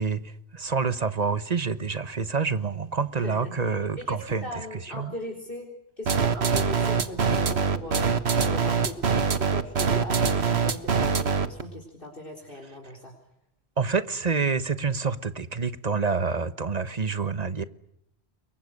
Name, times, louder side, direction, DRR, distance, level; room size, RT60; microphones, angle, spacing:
voice 1, 0.0-5.1 13.8-17.6, right 5 dB, 40° right, 1.3 m, -27 dB
voice 2, 3.1-5.7 6.0-9.1 9.4-13.2, left 1 dB, 60° left, 4.2 m, -38 dB
sound 1, 6.1-11.6, right 5 dB, 90° right, 1.6 m, -23 dB
28.0 x 23.0 x 6.6 m
omnidirectional pair, 1.1 m